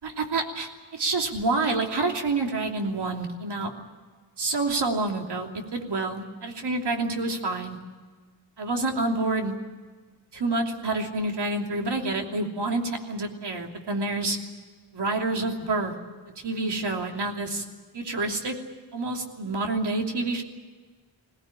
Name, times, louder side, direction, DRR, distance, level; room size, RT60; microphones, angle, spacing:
voice 1, 0.0-3.7 4.4-7.8 8.6-9.5 10.3-14.4 14.9-15.9 16.4-17.6 17.9-18.5 18.9-20.4, right 2 dB, 60° right, 2 dB, 3.1 m, -28 dB
22.0 x 18.0 x 9.9 m, 1.4 s
wide cardioid pair, 105°, 46 cm